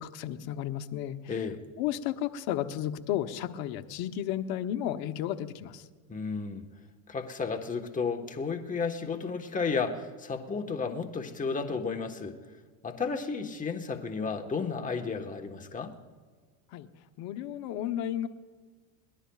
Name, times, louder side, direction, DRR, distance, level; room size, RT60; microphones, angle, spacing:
voice 1, 0.0-1.3 1.8-5.8 16.7-16.9 17.2-18.3, left 11 dB, 60° left, 9 dB, 1.0 m, -33 dB
voice 2, 1.3-1.6 6.1-6.6 7.1-12.4 12.8-15.9, left 5 dB, 20° left, 3 dB, 1.3 m, -33 dB
22.5 x 18.5 x 2.4 m, 1.5 s
supercardioid pair, 90°, 41 cm